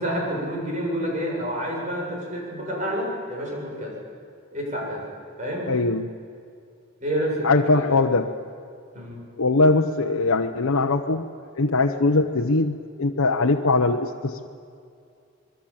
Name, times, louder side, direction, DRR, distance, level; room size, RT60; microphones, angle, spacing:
voice 1, 0.0-4.0 4.5-5.1 5.4-5.7 7.0-8.0 8.9-9.2, equal, 35° right, -2 dB, 7.3 m, -28 dB
voice 2, 5.7-6.1 7.4-8.3 9.4-11.3 11.6-14.5, left 3 dB, 85° left, 2 dB, 1.0 m, -21 dB
26.0 x 22.0 x 8.9 m, 2.4 s
head